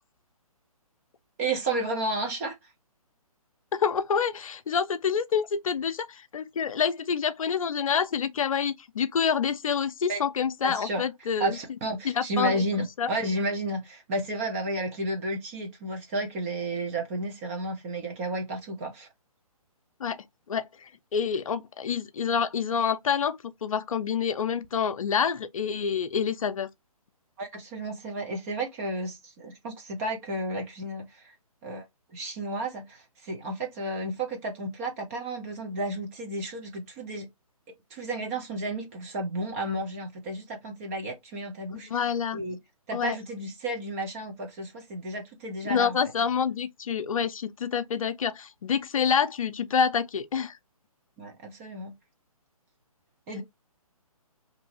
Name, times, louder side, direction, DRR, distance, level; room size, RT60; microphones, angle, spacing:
voice 1, 1.4-2.6 10.1-10.2 10.6-11.0 11.4-19.1 27.4-31.4 31.6-31.8 32.1-37.3 37.9-41.9 42.3-42.6 42.9-46.0 51.2-51.9 53.3-53.4, right 1 dB, 25° right, 0.6 m, -32 dB
voice 2, 3.7-11.6 12.0-12.6 13.0-13.1 20.0-20.2 20.5-26.7 41.7-42.4 42.9-43.2 45.6-50.6, left 7 dB, 65° left, 0.5 m, -27 dB
2.7 x 2.6 x 2.8 m
figure-of-eight pair, 140°, 19 cm